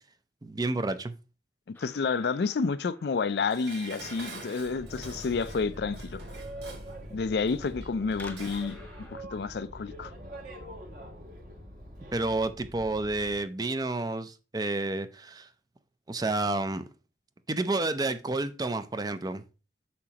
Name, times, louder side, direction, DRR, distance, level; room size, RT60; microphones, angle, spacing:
voice 1, 0.4-1.1 12.1-15.5 16.1-16.8 17.5-19.4, right 2 dB, 20° right, 0.5 m, -30 dB
voice 2, 1.7-6.2 7.1-8.8 9.1-10.1, left 4 dB, 65° left, 0.4 m, -30 dB
sound 1, 1.7-9.2, left 2 dB, 10° left, 0.9 m, -54 dB
Dishes pots and pans, 3.5-8.8 9.1-9.2, right 2 dB, 70° right, 1.8 m, -46 dB
Boat Water vehicle, 4.6-13.4, equal, 50° right, 1.5 m, -44 dB
8.5 x 6.1 x 2.9 m
head